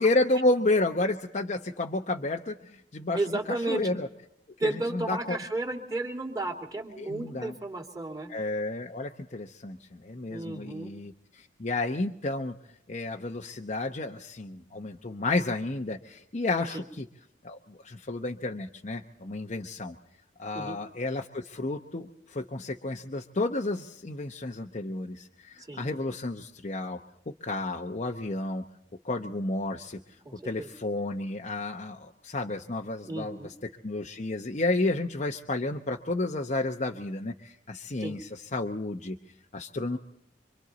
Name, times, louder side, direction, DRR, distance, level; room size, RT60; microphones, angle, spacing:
voice 1, 0.0-3.2 3.7-4.1 4.6-5.4 7.0-7.5 8.3-12.5 12.9-17.1 17.4-20.0 20.4-27.0 27.3-28.6 29.0-30.0 30.4-33.4 33.8-39.2 39.5-40.0, left 2 dB, 40° left, 2 dB, 0.8 m, -31 dB
voice 2, 3.1-3.9 4.6-8.3 10.3-10.9 16.7-16.8 20.5-20.8 25.7-25.9 30.2-30.7 33.1-33.5 38.0-38.2, right 2 dB, 20° right, 2 dB, 2.7 m, -33 dB
25.5 x 25.0 x 4.0 m, 0.76 s
head